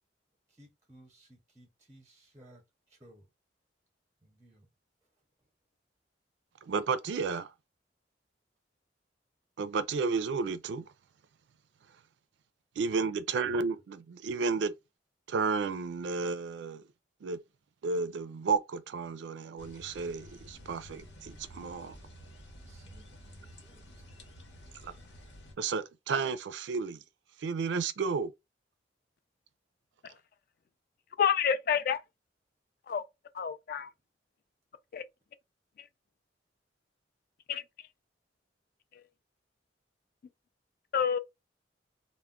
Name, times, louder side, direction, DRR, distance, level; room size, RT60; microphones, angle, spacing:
voice 1, 0.5-2.6 2.9-3.3 4.2-4.7 13.5-13.6 22.6-24.1, right 1 dB, 15° right, 0.5 m, -58 dB
voice 2, 6.7-7.5 9.6-10.8 12.8-14.7 15.3-16.8 17.2-17.4 17.8-22.0 24.8-24.9 25.6-27.0 27.4-28.3, right 4 dB, 75° right, 0.4 m, -32 dB
sound 1, 19.6-25.6, equal, 80° left, 0.9 m, -51 dB
voice 3, 31.2-32.0 32.9-33.0 33.4-33.9 34.9-35.0 37.5-37.6 40.9-41.2, left 7 dB, 50° left, 0.3 m, -28 dB
2.2 x 2.1 x 3.5 m
head